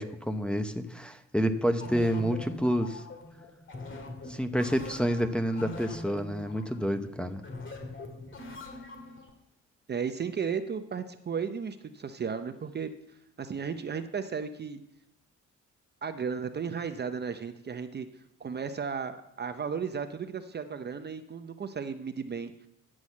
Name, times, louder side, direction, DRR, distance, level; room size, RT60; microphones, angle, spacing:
voice 1, 0.0-3.0 4.3-7.4, equal, 5° left, 6 dB, 0.8 m, -29 dB
sound 1, 1.8-9.3, left 2 dB, 40° left, 2.0 m, -43 dB
voice 2, 9.9-12.9 13.4-14.8 16.0-18.1 18.4-22.5, right 6 dB, 35° right, 9 dB, 0.7 m, -34 dB
9.7 x 6.3 x 7.3 m, 0.80 s
cardioid pair, 90°, 30 cm